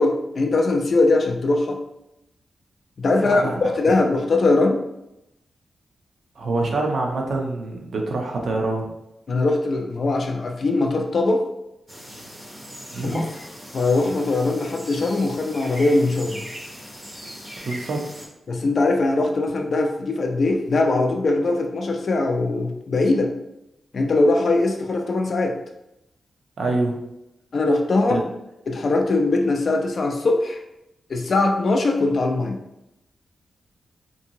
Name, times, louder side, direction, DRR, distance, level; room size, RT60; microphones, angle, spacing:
voice 1, 0.0-1.8 3.0-4.8 9.3-11.5 13.0-13.3 13.7-16.5 18.5-23.3 23.9-25.6 27.5-28.2 28.7-30.6 31.1-32.6, left 2 dB, 50° left, 3 dB, 0.4 m, -21 dB
voice 2, 3.2-3.6 6.4-8.9 12.9-13.3 17.6-18.0 26.6-27.0 28.1-28.2, right 2 dB, 65° right, 1 dB, 0.5 m, -25 dB
sound 1, 11.9-18.3, equal, 10° right, 0.6 m, -39 dB
2.8 x 2.6 x 2.7 m, 0.88 s
wide cardioid pair, 120°, 0 cm